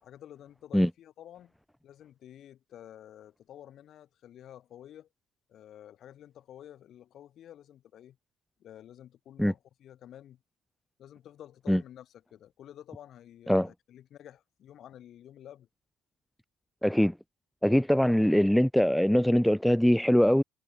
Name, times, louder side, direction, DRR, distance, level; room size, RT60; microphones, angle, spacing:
voice 1, 0.0-1.5 1.8-5.1 5.5-8.2 8.6-10.4 11.0-15.7, left 11 dB, 55° left, 2.2 m, -50 dB
voice 2, 16.8-17.1 17.6-20.4, equal, 5° left, 0.5 m, -22 dB
hypercardioid pair, 60°, 0 cm